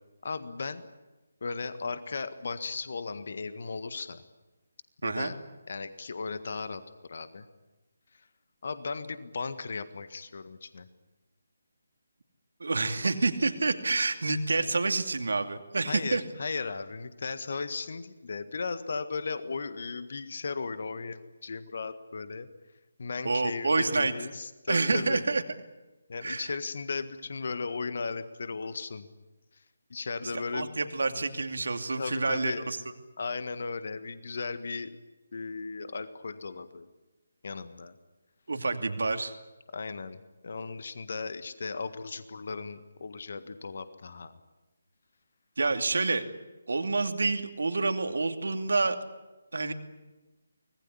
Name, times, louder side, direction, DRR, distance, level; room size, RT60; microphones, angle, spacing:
voice 1, 0.2-0.9 1.4-4.2 5.0-5.4 5.7-7.4 8.6-10.9 15.8-22.5 23.0-25.2 26.1-29.1 29.9-30.7 31.9-32.7 33.2-35.0 35.3-36.9 37.4-37.9 39.7-40.2 40.4-44.4, left 4 dB, 50° left, 12 dB, 1.7 m, -36 dB
voice 2, 5.0-5.3 12.6-16.2 23.2-24.1 24.7-25.4 26.2-26.5 30.5-32.8 38.5-39.3 45.6-46.2 46.7-49.0 49.5-49.7, right 3 dB, 60° right, 7 dB, 2.6 m, -28 dB
25.0 x 19.5 x 9.8 m, 1.1 s
figure-of-eight pair, 150°, 0 cm